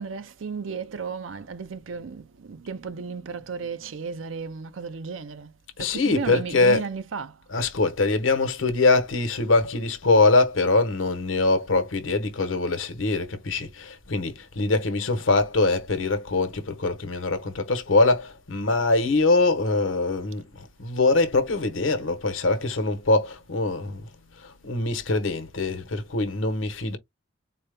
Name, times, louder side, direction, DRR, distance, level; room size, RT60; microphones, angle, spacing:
voice 1, 0.0-5.5 5.8-7.4, right 5 dB, 85° right, 0.6 m, -34 dB
voice 2, 5.8-6.9 7.5-27.0, left 3 dB, 85° left, 0.9 m, -23 dB
4.1 x 2.1 x 3.3 m
head